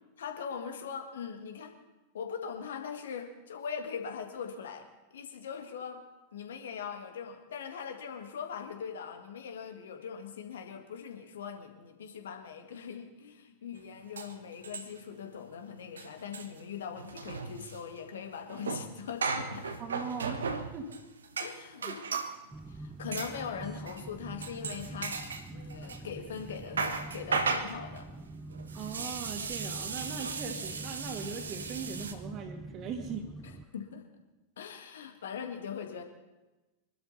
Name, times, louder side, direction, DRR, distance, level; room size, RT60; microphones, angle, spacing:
voice 1, 0.2-1.7 2.1-6.0 6.3-19.8 21.4-22.0 22.7-25.2 25.5-28.1 32.8-32.9 33.4-34.1 34.6-36.0, left 7 dB, 65° left, 6 dB, 1.8 m, -41 dB
sound 1, 13.8-13.9 14.2-15.2 15.4-15.6 15.8-22.4 23.1-23.4 23.9-24.1 24.4-26.0 26.4-32.1, right 4 dB, 70° right, 1.2 m, -36 dB
voice 2, 19.8-20.4 20.7-20.9 21.8-22.0 28.7-33.2, right 6 dB, 35° right, 4 dB, 2.4 m, -39 dB
sound 2, 22.5-33.7, right 2 dB, 10° right, 0.9 m, -45 dB
24.5 x 12.5 x 4.1 m, 1.1 s
figure-of-eight pair, 90°, 0 cm